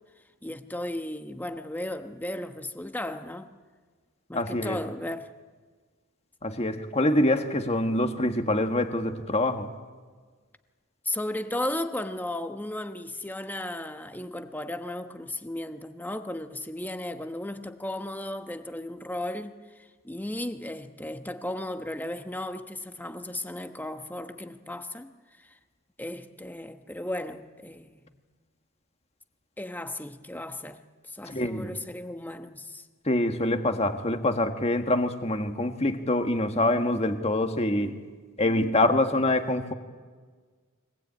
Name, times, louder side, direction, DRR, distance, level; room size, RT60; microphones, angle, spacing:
voice 1, 0.4-3.5 4.3-5.3 11.0-25.1 25.4-25.6 26.0-28.1 29.6-30.8 31.1-32.9, left 1 dB, 10° left, 7 dB, 1.1 m, -35 dB
voice 2, 4.3-4.8 6.4-9.7 31.2-31.8 33.0-37.9 38.4-39.7, left 1 dB, 30° left, 6 dB, 1.6 m, -25 dB
24.5 x 19.0 x 8.8 m, 1.5 s
head